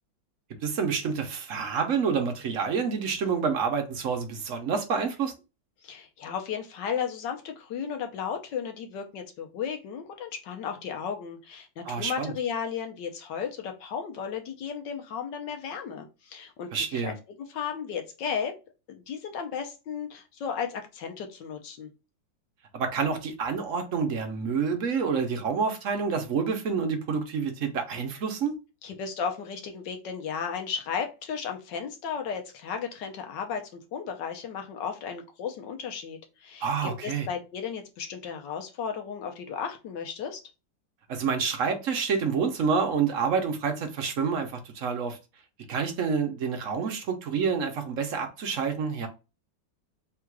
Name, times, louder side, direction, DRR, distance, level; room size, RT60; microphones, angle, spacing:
voice 1, 0.6-5.3 11.8-12.3 16.7-17.1 22.7-28.6 36.6-37.3 41.1-45.2 45.7-49.1, right 6 dB, 60° right, 0.9 m, -28 dB
voice 2, 5.8-17.1 17.5-18.5 18.9-21.9 28.8-40.4, left 7 dB, 75° left, 1.5 m, -34 dB
3.7 x 2.4 x 4.6 m
omnidirectional pair, 2.0 m